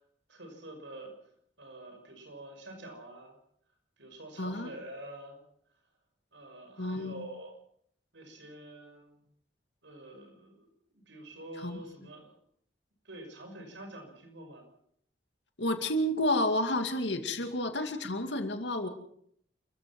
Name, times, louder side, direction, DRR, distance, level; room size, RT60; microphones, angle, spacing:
voice 1, 0.3-1.1 1.6-3.4 4.0-5.4 6.3-7.6 8.1-9.2 9.8-12.4 13.0-14.6, right 1 dB, 90° right, 5 dB, 6.1 m, -47 dB
voice 2, 4.4-4.7 6.8-7.2 11.6-11.8 15.6-18.9, left 1 dB, 70° left, 7 dB, 2.3 m, -30 dB
29.5 x 15.0 x 6.1 m, 0.67 s
head